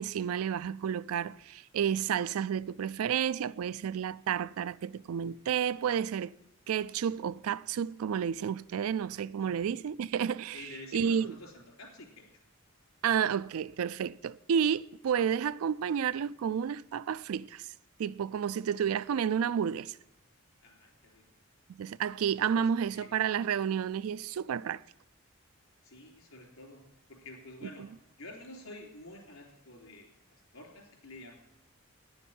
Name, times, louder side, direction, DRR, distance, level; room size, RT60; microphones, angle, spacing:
voice 1, 0.0-6.3 6.7-10.6 10.9-11.3 13.0-17.7 18.0-20.0 21.8-24.8 27.8-27.9, right 8 dB, 80° right, 0.3 m, -31 dB
voice 2, 10.5-12.2 20.6-21.2 22.7-23.1 25.8-26.8 27.1-27.9 28.2-30.1 30.5-31.3, left 2 dB, 75° left, 3.8 m, -49 dB
10.0 x 7.2 x 8.8 m
head